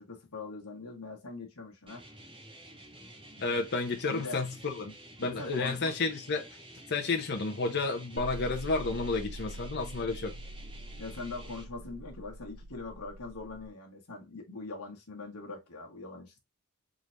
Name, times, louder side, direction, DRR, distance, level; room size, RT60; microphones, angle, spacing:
voice 1, 0.0-2.1 4.0-4.4 5.2-6.2 11.0-16.4, left 3 dB, 85° left, 1.4 m, -42 dB
sound 1, 1.9-11.6, right 1 dB, 25° right, 1.3 m, -51 dB
voice 2, 3.4-4.9 5.2-6.5 6.9-10.3, left 3 dB, 50° left, 0.9 m, -31 dB
sound 2, 8.2-13.7, right 1 dB, 85° right, 0.6 m, -44 dB
3.9 x 3.3 x 2.6 m
head